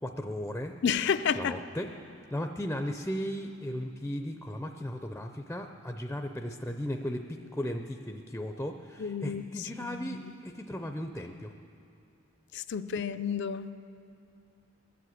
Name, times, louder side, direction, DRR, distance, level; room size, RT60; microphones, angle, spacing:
voice 1, 0.0-0.7 1.3-1.9 2.3-11.5, equal, 10° left, 5 dB, 0.5 m, -36 dB
voice 2, 0.8-1.5 9.0-9.4 9.9-10.3 12.5-13.7, left 7 dB, 60° left, 12 dB, 0.5 m, -30 dB
20.5 x 7.6 x 8.1 m, 2.6 s
head